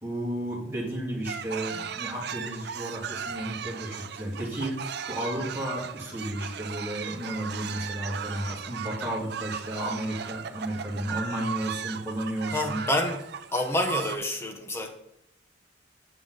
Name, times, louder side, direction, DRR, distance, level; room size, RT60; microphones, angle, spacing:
voice 1, 0.0-12.8, right 1 dB, 10° right, 2.1 m, -33 dB
sound 1, 1.3-14.2, right 7 dB, 55° right, 0.4 m, -37 dB
voice 2, 12.5-13.3 13.5-14.9, left 1 dB, 15° left, 0.9 m, -28 dB
7.9 x 6.9 x 3.9 m
head